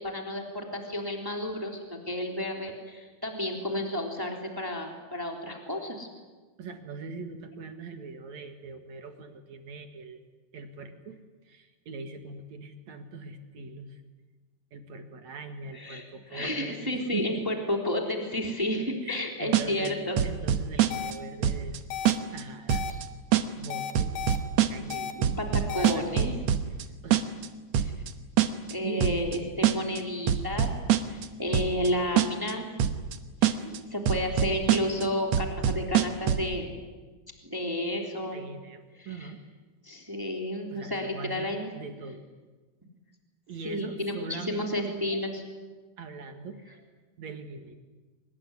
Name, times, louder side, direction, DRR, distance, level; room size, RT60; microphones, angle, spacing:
voice 1, 0.0-6.1 15.7-16.0 16.3-20.2 22.9-23.0 25.1-26.3 27.8-27.9 28.7-30.7 31.1-32.7 33.4-33.5 33.9-36.7 37.4-38.5 39.0-39.2 39.8-41.7 43.6-45.4, left 1 dB, 5° right, 2 dB, 2.7 m, -31 dB
voice 2, 6.6-10.2 10.5-11.2 11.4-14.0 14.7-17.5 19.0-21.8 22.3-22.9 23.6-24.1 24.7-25.4 25.7-26.5 27.0-27.3 28.8-29.8 33.6-33.8 38.3-39.4 40.7-42.2 43.5-45.0 46.0-46.6 47.2-47.8, right 4 dB, 55° right, 6 dB, 2.6 m, -41 dB
sound 1, 19.5-19.9 20.2-21.2 21.4-21.8 22.1-22.4 22.7-23.0 23.3-23.7 24.0-24.9 25.2-26.8 27.1-27.5 27.7-28.1 28.4-28.7 29.0-29.4 29.6-30.0 30.3-31.3 31.5-31.9 32.2-32.5 32.8-33.2 33.4-33.8 34.1-35.0 35.3-36.5, right 10 dB, 85° right, 1.4 m, -24 dB
sound 2, 20.9-21.1 21.9-22.1 22.7-22.9 23.7-24.4 24.9-25.1 25.7-25.9, left 9 dB, 70° left, 3.3 m, -34 dB
24.5 x 21.0 x 9.7 m, 1.3 s
omnidirectional pair, 4.7 m